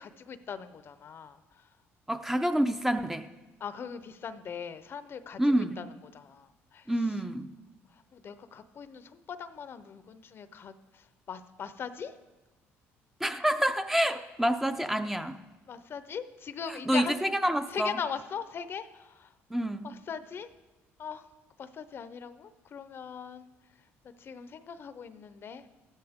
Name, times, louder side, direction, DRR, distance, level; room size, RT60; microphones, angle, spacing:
voice 1, 0.0-1.4 3.6-5.8 6.1-6.5 6.7-6.8 8.1-10.7 11.3-12.1 15.7-17.1 17.7-19.3 19.8-20.5 21.0-21.2 21.6-23.4 24.2-25.6, left 7 dB, 50° left, 12 dB, 0.7 m, -40 dB
voice 2, 2.1-3.3 5.4-5.8 6.9-7.5 13.2-15.4 16.7-18.0 19.5-19.9, right 1 dB, 5° right, 8 dB, 0.6 m, -28 dB
14.0 x 12.5 x 3.6 m, 1.1 s
cardioid pair, 95°, 5 cm